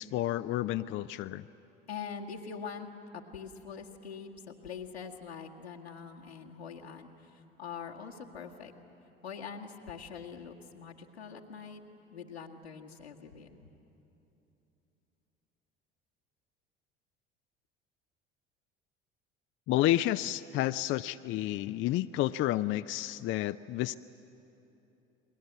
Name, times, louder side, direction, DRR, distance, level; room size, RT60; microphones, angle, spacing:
voice 1, 0.0-1.4 19.7-24.0, left 14 dB, 40° left, 12 dB, 0.5 m, -30 dB
voice 2, 1.9-2.9 3.1-8.7 9.2-11.8 12.1-13.6, left 6 dB, 85° left, -1 dB, 1.9 m, -44 dB
29.5 x 22.0 x 8.1 m, 3.0 s
figure-of-eight pair, 65°, 31 cm